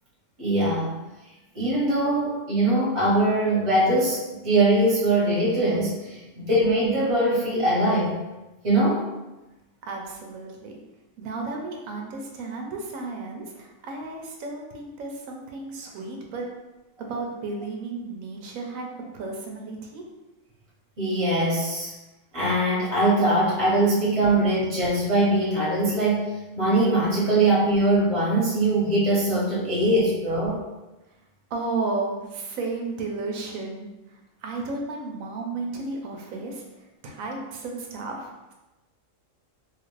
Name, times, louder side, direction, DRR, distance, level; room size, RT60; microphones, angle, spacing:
voice 1, 0.4-0.9 1.5-8.1 8.6-9.1 21.0-21.9 22.3-30.6, right 1 dB, 25° right, -7 dB, 1.0 m, -22 dB
voice 2, 9.8-10.8 11.2-16.5 17.0-20.0 31.5-38.5, right 3 dB, 80° right, 1 dB, 1.0 m, -33 dB
3.1 x 2.4 x 3.1 m, 1.0 s
omnidirectional pair, 1.4 m